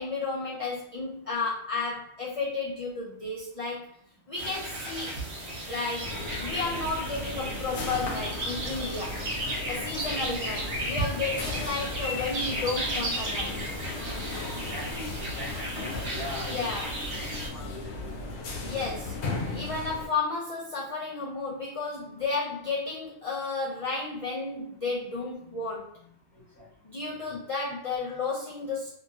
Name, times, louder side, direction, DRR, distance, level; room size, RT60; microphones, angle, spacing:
voice 1, 0.0-3.9 4.3-5.2 5.7-9.2 9.7-13.6 16.5-17.3 18.6-19.2 19.4-26.1 26.8-28.9, left 3 dB, 50° left, -4 dB, 0.4 m, -33 dB
sound 1, 4.4-17.5, right 1 dB, 50° right, 0.9 m, -34 dB
sound 2, 6.0-20.1, left 3 dB, 80° left, 0.9 m, -36 dB
voice 2, 14.4-16.6 17.1-18.1 18.7-18.8 26.6-26.7, left 1 dB, 15° right, -7 dB, 1.1 m, -41 dB
2.8 x 2.7 x 2.4 m, 0.64 s
omnidirectional pair, 1.2 m